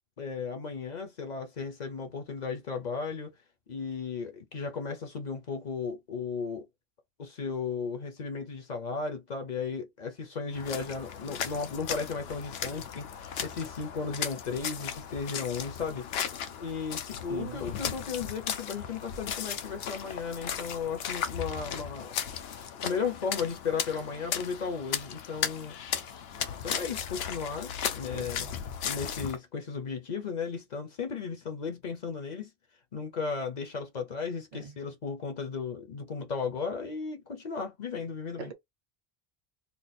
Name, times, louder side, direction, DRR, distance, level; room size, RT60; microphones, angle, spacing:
voice 1, 0.2-3.3 3.7-6.6 7.2-16.3 16.6-22.1 22.4-25.8 26.6-28.5 28.8-32.5 32.9-38.5, left 5 dB, 50° left, 0.7 m, -35 dB
sound 1, 10.5-29.4, left 8 dB, 75° left, 0.8 m, -36 dB
voice 2, 17.3-17.6 28.1-28.6 34.5-34.7 38.4-38.5, right 6 dB, 45° right, 0.7 m, -41 dB
2.6 x 2.4 x 4.0 m
omnidirectional pair, 1.1 m